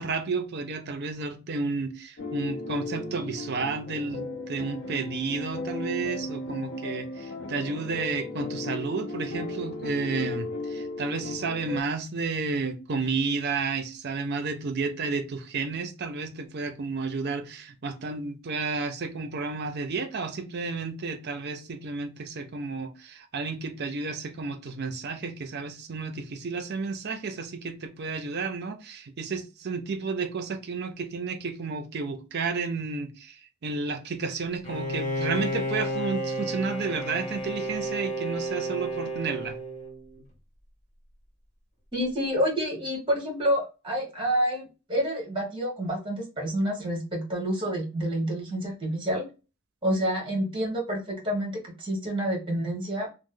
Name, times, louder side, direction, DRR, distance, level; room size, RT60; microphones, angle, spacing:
voice 1, 0.0-39.5, right 4 dB, 50° right, 0.5 m, -32 dB
sound 1, 2.2-11.8, left 2 dB, 55° left, 0.6 m, -35 dB
Bowed string instrument, 34.6-40.2, right 1 dB, 35° left, 1.0 m, -32 dB
voice 2, 41.9-44.6 44.9-49.3 49.8-53.1, equal, 25° right, 1.2 m, -28 dB
3.0 x 2.0 x 3.6 m
head